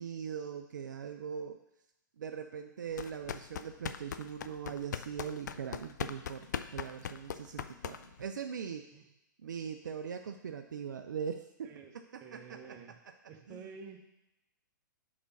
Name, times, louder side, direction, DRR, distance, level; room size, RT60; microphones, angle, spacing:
voice 1, 0.0-1.6 2.2-6.5 6.7-8.9 9.4-12.6 13.5-13.7, right 7 dB, 65° right, 6 dB, 0.4 m, -41 dB
sound 1, 2.9-8.3, left 8 dB, 60° left, 0.4 m, -40 dB
voice 2, 12.2-12.9 13.3-14.0, right 5 dB, 25° right, 3 dB, 0.9 m, -49 dB
5.0 x 4.1 x 5.8 m, 0.88 s
figure-of-eight pair, 115°, 11 cm